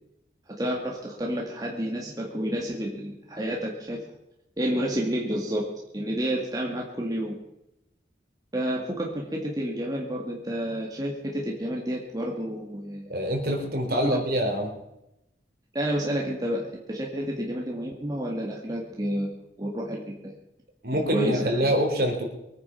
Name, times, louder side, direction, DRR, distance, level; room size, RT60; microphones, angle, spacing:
voice 1, 0.6-4.0 4.6-7.4 8.5-13.1 14.0-14.2 15.7-20.3 21.1-21.5, equal, 20° right, -2 dB, 2.0 m, -30 dB
voice 2, 13.1-14.7 20.8-22.2, equal, 50° right, 2 dB, 3.7 m, -25 dB
23.0 x 9.5 x 5.8 m, 0.87 s
head